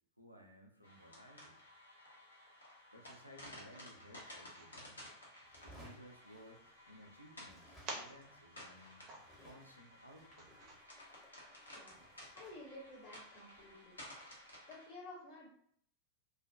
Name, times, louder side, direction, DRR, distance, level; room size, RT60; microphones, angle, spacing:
voice 1, 0.2-1.6 2.9-5.0 5.6-9.1 9.4-10.5, equal, 90° right, 1 dB, 0.4 m, -58 dB
sound 1, 0.8-14.9, left 1 dB, 75° left, 0.7 m, -56 dB
sound 2, 3.0-10.8, right 2 dB, 40° right, 0.6 m, -55 dB
sound 3, 5.5-7.1 7.4-14.6, equal, ahead, 0.9 m, -62 dB
voice 2, 12.3-14.0 14.7-15.5, left 2 dB, 35° left, -4 dB, 0.8 m, -52 dB
2.4 x 2.2 x 2.5 m, 0.66 s
figure-of-eight pair, 90°, 0 cm